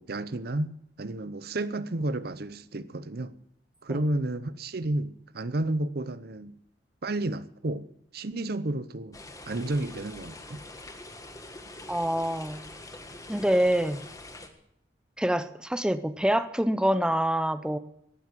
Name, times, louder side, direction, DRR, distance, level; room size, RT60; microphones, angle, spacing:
voice 1, 0.0-3.4 3.8-6.6 7.0-7.9 8.1-9.2 9.5-10.6, right 2 dB, 60° right, 0.8 m, -31 dB
sound 1, 9.1-14.5, left 2 dB, 20° left, 1.6 m, -44 dB
voice 2, 11.9-12.6 13.3-14.0 15.2-17.8, right 1 dB, 5° right, 0.7 m, -26 dB
18.0 x 9.6 x 7.5 m
head